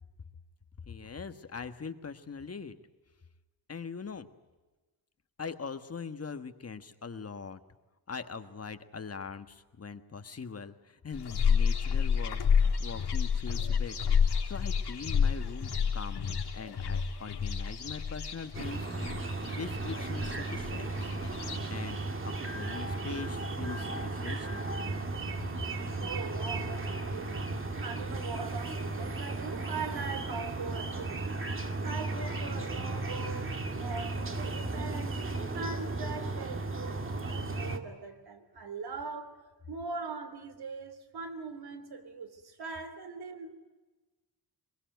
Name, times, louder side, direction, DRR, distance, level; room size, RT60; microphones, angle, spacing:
voice 1, 0.9-2.8 3.7-4.3 5.4-7.6 8.1-18.9 19.4-21.3 21.7-24.7, left 5 dB, 40° left, 1.5 m, -42 dB
sound 1, 11.1-21.6, left 6 dB, 90° left, 4.0 m, -30 dB
sound 2, 18.5-37.8, right 2 dB, 30° right, 2.1 m, -35 dB
voice 2, 26.0-27.5 27.8-31.4 31.8-35.3 35.5-39.4 39.7-43.6, right 4 dB, 70° right, 3.2 m, -41 dB
24.0 x 22.5 x 9.3 m
wide cardioid pair, 140°, 39 cm